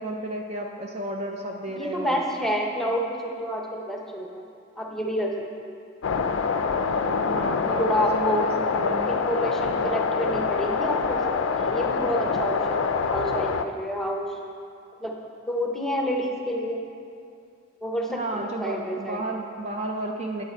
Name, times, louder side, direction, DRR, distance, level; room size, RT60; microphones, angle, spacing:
voice 1, 0.0-2.3 7.3-9.1 9.8-10.0 18.1-20.4, right 1 dB, 30° right, 1 dB, 0.5 m, -32 dB
voice 2, 1.7-4.4 4.8-5.7 7.8-8.4 9.1-14.4 15.0-15.1 15.5-16.8 17.8-19.2, equal, ahead, 0 dB, 0.8 m, -29 dB
sound 1, 6.0-13.6, left 5 dB, 80° left, 0.4 m, -25 dB
8.9 x 8.2 x 4.4 m, 2.5 s
head